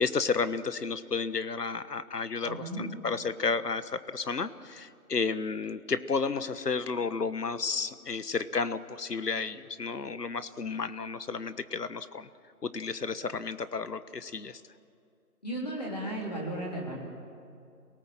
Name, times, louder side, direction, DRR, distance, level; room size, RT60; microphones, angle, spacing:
voice 1, 0.0-12.3 12.6-14.6, left 4 dB, 85° left, 13 dB, 1.3 m, -32 dB
voice 2, 2.4-2.8 15.4-17.0, right 1 dB, 25° left, -2 dB, 3.2 m, -35 dB
28.5 x 18.0 x 7.5 m, 2.5 s
figure-of-eight pair, 180°, 46 cm